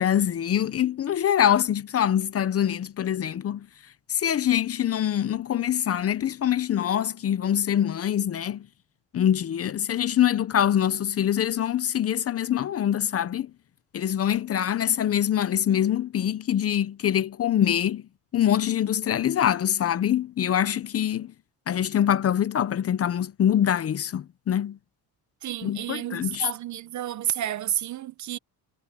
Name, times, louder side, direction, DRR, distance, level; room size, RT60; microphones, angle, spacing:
voice 1, 0.0-3.7 4.1-8.7 9.1-13.5 13.9-18.0 18.3-21.3 21.7-24.8 25.6-26.4, left 10 dB, 35° left, 0.6 m, -24 dB
voice 2, 25.4-28.4, right 12 dB, 45° right, 0.7 m, -31 dB
cardioid pair, 155°, 41 cm